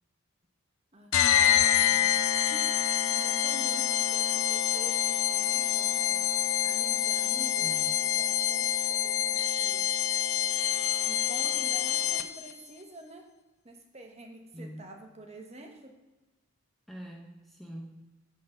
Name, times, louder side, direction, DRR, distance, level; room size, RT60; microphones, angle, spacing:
sound 1, 1.1-12.5, left 10 dB, 70° left, 0.4 m, -26 dB
voice 1, 1.4-2.2 2.5-2.8 3.1-6.2 6.6-9.9 11.1-13.3 13.6-16.0, right 1 dB, 30° right, 3 dB, 1.0 m, -48 dB
voice 2, 7.5-8.0 14.5-14.9 16.9-18.1, equal, ahead, -1 dB, 0.7 m, -44 dB
9.5 x 3.8 x 6.7 m, 1.1 s
head